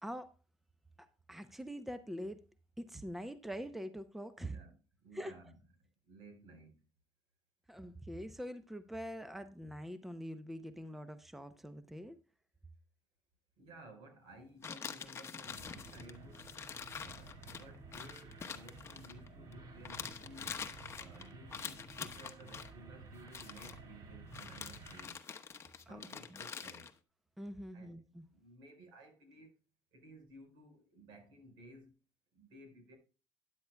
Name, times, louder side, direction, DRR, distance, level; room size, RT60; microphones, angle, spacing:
voice 1, 0.0-0.3 1.0-2.4 2.8-4.6 5.1-5.3 7.7-12.2 25.9-26.1 27.4-28.2, equal, 5° right, 0.7 m, -44 dB
voice 2, 4.4-5.5 6.0-6.8 13.6-16.6 17.0-20.6 21.0-25.3 25.9-26.9 27.7-28.0 28.3-29.6 29.9-31.9 32.3-33.0, right 1 dB, 70° right, 4.6 m, -56 dB
sound 1, 14.6-19.5 19.8-22.7 23.2-23.8 24.3-26.9, left 6 dB, 30° left, 1.0 m, -46 dB
sound 2, 15.4-25.1, right 3 dB, 50° right, 2.1 m, -53 dB
12.5 x 9.8 x 2.3 m
cardioid pair, 110°, 8 cm